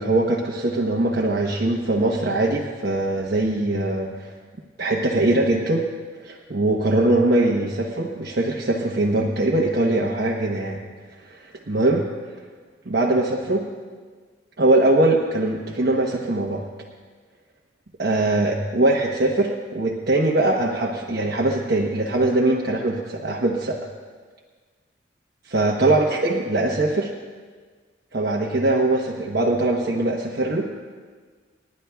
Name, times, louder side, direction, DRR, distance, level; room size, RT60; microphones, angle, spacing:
voice 1, 0.0-4.3 4.8-5.9 6.2-10.8 11.2-12.1 12.9-13.7 14.6-16.6 18.0-23.8 25.4-27.1 28.1-30.7, right 2 dB, 55° right, -1 dB, 1.0 m, -21 dB
29.5 x 11.0 x 2.3 m, 1.5 s
head